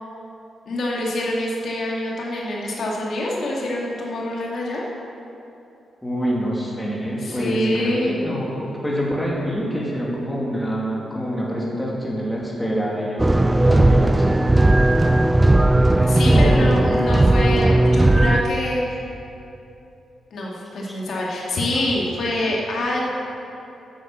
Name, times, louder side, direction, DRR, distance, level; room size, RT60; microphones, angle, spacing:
voice 1, 0.7-4.8 7.2-8.2 16.0-19.0 20.3-23.1, left 1 dB, 60° left, -3 dB, 2.2 m, -25 dB
voice 2, 6.0-14.3 16.2-16.9 20.9-21.0, equal, 5° left, -4 dB, 2.2 m, -26 dB
sound 1, 13.2-18.4, right 1 dB, 15° right, 0.3 m, -16 dB
11.0 x 7.8 x 7.5 m, 2.8 s
cardioid pair, 125°, 0 cm